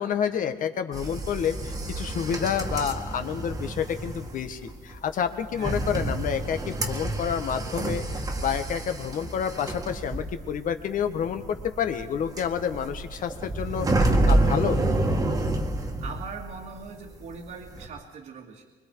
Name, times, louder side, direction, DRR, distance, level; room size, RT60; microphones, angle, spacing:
voice 1, 0.0-14.8, left 8 dB, 55° left, 8 dB, 1.6 m, -29 dB
sound 1, 0.9-16.9 17.1-17.9, right 2 dB, 20° right, 1.8 m, -28 dB
voice 2, 15.8-18.6, right 5 dB, 60° right, -2 dB, 2.3 m, -41 dB
25.0 x 23.5 x 4.8 m, 1.4 s
cardioid pair, 165°, 16 cm